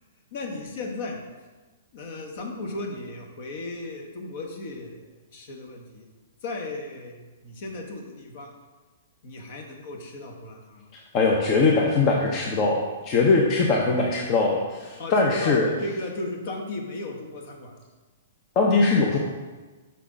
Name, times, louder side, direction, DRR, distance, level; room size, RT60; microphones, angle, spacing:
voice 1, 0.3-1.2 1.9-5.0 5.3-6.1 6.4-8.5 9.2-10.9 15.0-17.7, left 2 dB, 55° left, 2 dB, 1.2 m, -35 dB
voice 2, 11.1-15.7 18.6-19.2, left 3 dB, 35° left, 0 dB, 0.8 m, -21 dB
5.8 x 5.6 x 3.8 m, 1.3 s
figure-of-eight pair, 120°, 0 cm